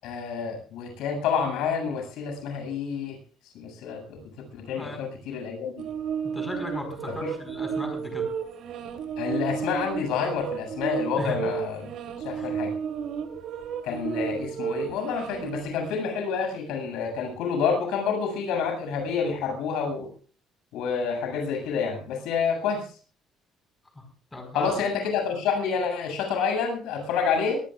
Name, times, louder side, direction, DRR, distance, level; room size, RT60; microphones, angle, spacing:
voice 1, 0.0-3.2 3.5-4.2 4.5-5.8 7.2-7.3 9.2-11.8 12.2-12.7 13.8-20.1 20.7-22.9 24.5-27.6, left 6 dB, 80° left, 5 dB, 7.4 m, -28 dB
sound 1, 5.8-15.6, right 7 dB, 60° right, 3.0 m, -32 dB
voice 2, 6.2-8.3 11.2-11.6 12.4-12.5 23.9-24.7, left 1 dB, 10° left, 5 dB, 4.7 m, -37 dB
22.0 x 19.0 x 2.5 m, 0.39 s
cardioid pair, 145°, 0 cm